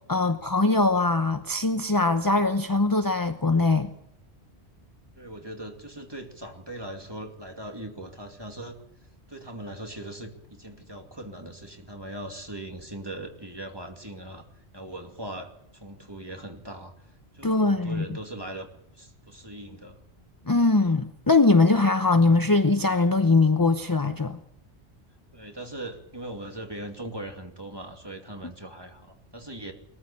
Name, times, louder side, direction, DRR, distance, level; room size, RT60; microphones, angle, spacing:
voice 1, 0.1-3.9 17.4-18.1 20.5-24.4, left 3 dB, 20° left, 9 dB, 0.8 m, -21 dB
voice 2, 5.1-8.8 9.3-14.5 14.7-16.9 17.3-18.7 18.9-20.0 25.3-29.7, right 1 dB, 20° right, 3 dB, 2.5 m, -40 dB
21.0 x 14.5 x 8.5 m, 0.80 s
omnidirectional pair, 1.1 m